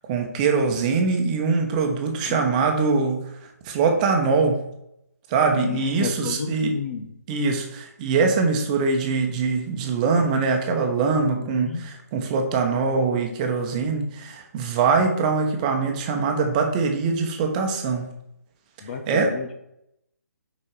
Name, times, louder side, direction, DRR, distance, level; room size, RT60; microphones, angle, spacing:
voice 1, 0.1-3.3 3.6-4.6 5.3-6.7 7.3-18.1 19.1-19.4, right 4 dB, 25° right, 3 dB, 1.2 m, -23 dB
voice 2, 5.5-7.1 11.4-11.8 18.8-19.5, left 6 dB, 40° left, 6 dB, 1.2 m, -31 dB
7.4 x 5.4 x 4.8 m, 0.79 s
figure-of-eight pair, 140°, 9 cm